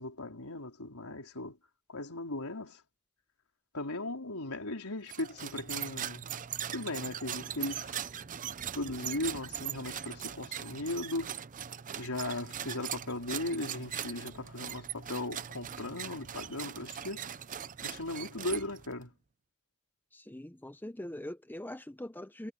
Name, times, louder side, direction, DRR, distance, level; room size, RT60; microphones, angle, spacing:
voice 1, 0.0-1.6 1.9-2.8 3.7-6.2 6.7-8.0 8.7-11.4 12.0-17.3 17.8-19.1, left 2 dB, 85° left, 4.2 m, -37 dB
sound 1, 5.1-19.0, right 9 dB, 35° right, 0.6 m, -40 dB
voice 2, 20.1-22.5, left 1 dB, 10° left, 0.7 m, -42 dB
head